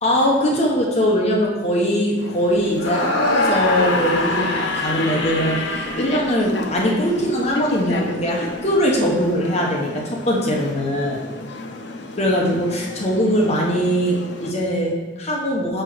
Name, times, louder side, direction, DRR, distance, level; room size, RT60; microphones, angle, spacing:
voice 1, 0.0-11.2 12.2-15.8, equal, 35° left, -2 dB, 1.0 m, -21 dB
sound 1, 2.2-14.5, left 2 dB, 65° left, 0.7 m, -32 dB
sound 2, 2.8-6.9, left 2 dB, 80° left, 1.1 m, -23 dB
5.6 x 4.4 x 6.1 m, 1.2 s
head